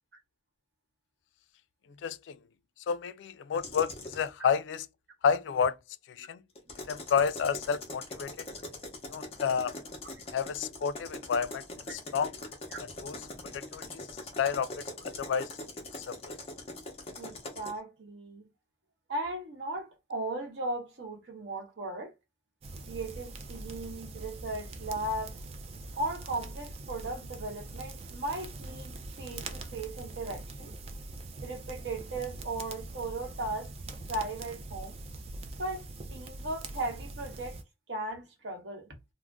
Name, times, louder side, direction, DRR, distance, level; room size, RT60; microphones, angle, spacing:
voice 1, 2.0-2.4 2.9-4.9 5.2-5.8 6.2-6.4 6.9-8.5 9.1-9.7 10.3-11.6 11.9-12.3 12.8-13.3 13.5-14.0 14.4-14.8 15.2-15.5 16.1-16.2, left 7 dB, 85° left, 0.3 m, -30 dB
sound 1, 3.5-4.3 6.6-17.8, left 2 dB, 35° left, 0.6 m, -42 dB
voice 2, 17.2-18.5 19.1-22.1 22.9-25.4 26.0-30.7 31.4-33.7 34.1-35.0 35.6-37.6 37.9-38.9, right 2 dB, 75° right, 0.9 m, -37 dB
sound 2, 22.6-37.6, right 2 dB, 35° right, 0.4 m, -43 dB
2.4 x 2.0 x 3.4 m
head